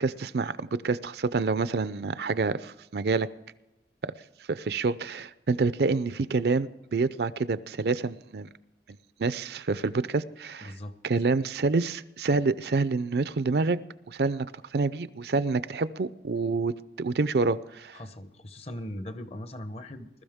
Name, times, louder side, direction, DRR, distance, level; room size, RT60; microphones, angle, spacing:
voice 1, 0.0-3.3 4.5-8.5 9.2-10.7 11.0-13.8 14.1-14.5 14.7-18.0, right 4 dB, 65° right, 15 dB, 0.5 m, -27 dB
voice 2, 10.6-11.0 17.9-20.2, left 1 dB, 35° left, 11 dB, 0.9 m, -39 dB
21.0 x 13.0 x 3.6 m, 0.96 s
head